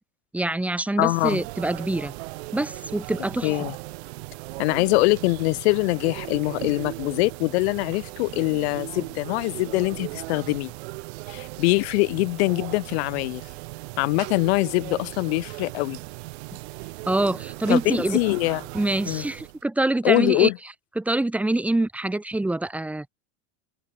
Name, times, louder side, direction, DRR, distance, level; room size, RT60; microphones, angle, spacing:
voice 1, 0.3-2.1 2.5-3.5 17.1-18.2 18.7-20.5 21.0-23.1, right 2 dB, 5° right, 1.7 m, -25 dB
voice 2, 1.0-1.4 3.4-3.7 4.6-10.7 11.3-13.4 14.0-16.0 17.7-18.6 19.1-19.2 20.0-20.6, left 25 dB, 65° left, 2.7 m, -23 dB
sound 1, 1.0-19.6, right 24 dB, 70° right, 3.8 m, -37 dB
open air
cardioid pair, 170°, 34 cm